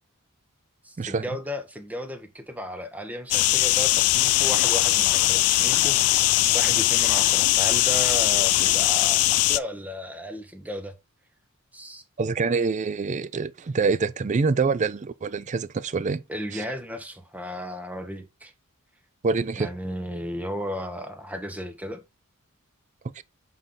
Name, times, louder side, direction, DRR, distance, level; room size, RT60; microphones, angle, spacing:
voice 1, 0.8-9.2 9.5-10.9 11.7-12.0 16.3-18.5 19.5-22.0, equal, 5° right, 0.9 m, -34 dB
sound 1, 3.3-9.6, left 16 dB, 80° left, 0.4 m, -20 dB
voice 2, 12.2-16.2 16.5-16.6 19.2-19.7 23.2-23.3, right 4 dB, 35° right, 0.4 m, -25 dB
7.1 x 3.9 x 3.7 m
head